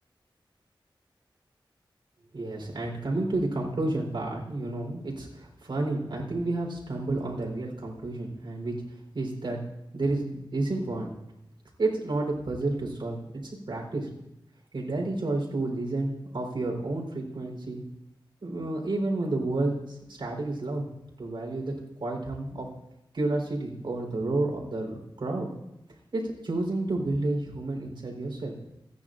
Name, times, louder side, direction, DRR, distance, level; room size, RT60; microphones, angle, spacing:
voice 1, 2.3-9.6 9.9-11.2 11.8-13.4 13.7-14.1 14.7-17.8 18.4-20.8 21.2-21.7 22.0-22.7 23.1-25.5 26.1-28.5, right 2 dB, 60° right, 0 dB, 4.1 m, -30 dB
30.0 x 10.0 x 2.6 m, 0.86 s
wide cardioid pair, 115°, 9 cm